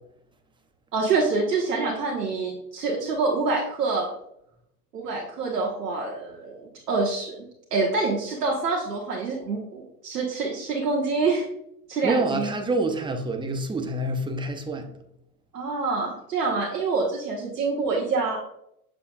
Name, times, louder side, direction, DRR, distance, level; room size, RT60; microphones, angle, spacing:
voice 1, 0.9-4.1 4.9-7.4 7.7-11.4 11.9-12.5 15.5-18.4, right 3 dB, 85° right, 1.4 m, -26 dB
voice 2, 12.0-14.9, right 2 dB, 10° right, 0.8 m, -27 dB
7.1 x 6.7 x 2.4 m
hypercardioid pair, 95°, 46 cm